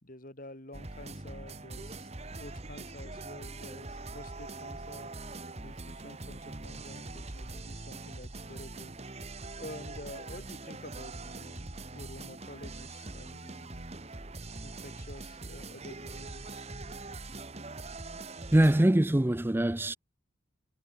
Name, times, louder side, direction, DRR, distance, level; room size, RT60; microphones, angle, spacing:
voice 1, 0.0-5.1 5.6-9.2 9.6-13.9 14.6-16.6, left 1 dB, 45° left, 3.0 m, -49 dB
sound 1, 0.7-18.8, right 2 dB, 35° right, 1.6 m, -43 dB
voice 2, 18.5-20.0, right 1 dB, 10° right, 0.5 m, -23 dB
head